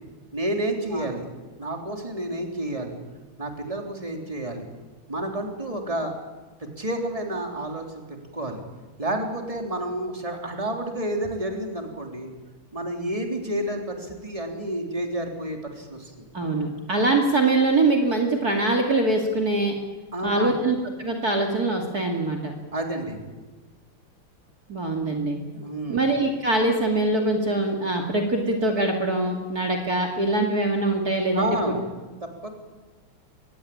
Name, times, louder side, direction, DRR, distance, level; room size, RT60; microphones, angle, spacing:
voice 1, 0.3-1.3 1.6-3.0 3.4-4.7 5.1-6.1 6.6-8.6 9.0-12.3 12.7-16.1 20.1-20.5 22.7-23.2 25.5-26.0 31.3-31.8 32.2-32.5, right 1 dB, 15° right, 2 dB, 3.7 m, -30 dB
voice 2, 16.3-19.8 20.2-22.5 24.7-25.4 25.9-31.7, right 2 dB, 45° right, 2 dB, 2.9 m, -23 dB
25.0 x 21.0 x 8.7 m, 1.3 s
omnidirectional pair, 2.4 m